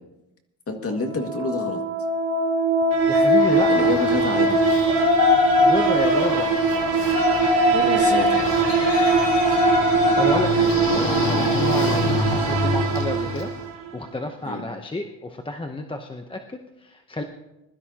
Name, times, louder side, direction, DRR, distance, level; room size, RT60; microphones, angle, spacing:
voice 1, 0.7-1.8 3.1-3.3 3.7-4.8 7.7-8.4 14.5-14.7, left 2 dB, 30° left, 3 dB, 2.0 m, -28 dB
sound 1, 1.0-13.9, right 4 dB, 80° right, 2.3 m, -22 dB
voice 2, 3.1-3.9 5.6-6.5 10.1-17.2, left 2 dB, 10° left, 5 dB, 0.7 m, -30 dB
Yell, 3.3-13.5, left 3 dB, 75° left, 2.7 m, -23 dB
21.5 x 12.5 x 2.9 m, 0.93 s
cardioid pair, 130°, 43 cm